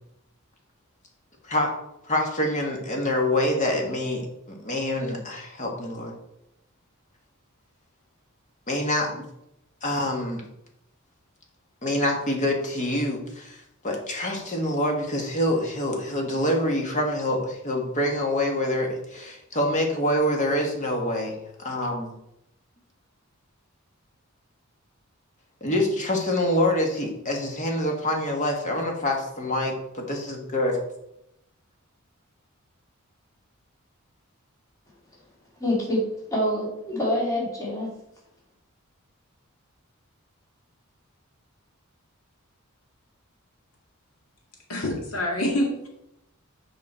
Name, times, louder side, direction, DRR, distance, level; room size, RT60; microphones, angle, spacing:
voice 1, 2.0-6.1 8.7-9.2 9.8-10.4 11.8-21.3 21.6-22.1 25.6-30.8, left 1 dB, 35° left, 1 dB, 1.5 m, -26 dB
voice 2, 35.6-36.0 36.3-37.9, left 1 dB, 15° left, -5 dB, 2.5 m, -26 dB
voice 3, 44.7-45.9, left 1 dB, 80° left, -1 dB, 2.1 m, -26 dB
7.5 x 5.2 x 4.3 m, 0.82 s
head